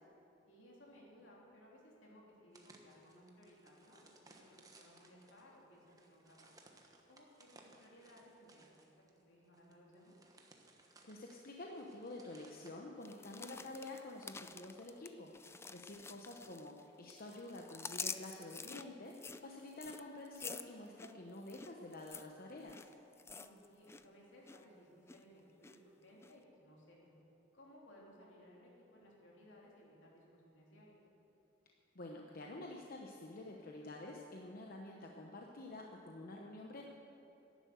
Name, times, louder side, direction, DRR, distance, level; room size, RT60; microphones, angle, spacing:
voice 1, 0.5-6.7 7.1-10.1 15.7-16.1 23.3-27.1 27.5-31.0, equal, 80° left, -3 dB, 3.4 m, -61 dB
sound 1, 2.5-12.7, right 2 dB, 20° right, 1.2 m, -64 dB
voice 2, 11.0-15.3 15.7-22.9 31.9-36.8, left 2 dB, 50° left, 0 dB, 1.0 m, -49 dB
sound 2, 13.0-16.8 17.1-24.0 24.3-24.6 25.1-25.8 26.2-26.3, left 4 dB, 15° left, 0.4 m, -48 dB
11.5 x 10.5 x 8.0 m, 2.8 s
head